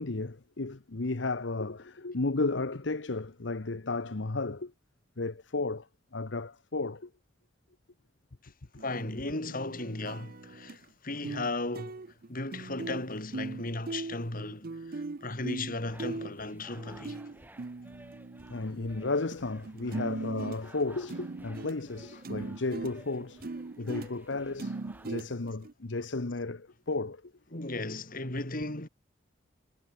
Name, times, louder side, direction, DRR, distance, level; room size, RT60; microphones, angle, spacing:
voice 1, 0.0-4.7 5.2-5.9 6.1-7.1 18.5-23.5 23.8-24.8 25.0-27.3, left 3 dB, 70° left, 1.0 m, -33 dB
voice 2, 8.8-12.0 12.3-17.3 27.5-28.9, left 2 dB, 50° left, 3.3 m, -36 dB
sound 1, 8.8-10.8 11.2-11.5 11.7-19.4 19.6-25.7, right 3 dB, 50° right, 0.6 m, -40 dB
sound 2, 15.8-25.1, right 1 dB, 10° right, 3.7 m, -56 dB
head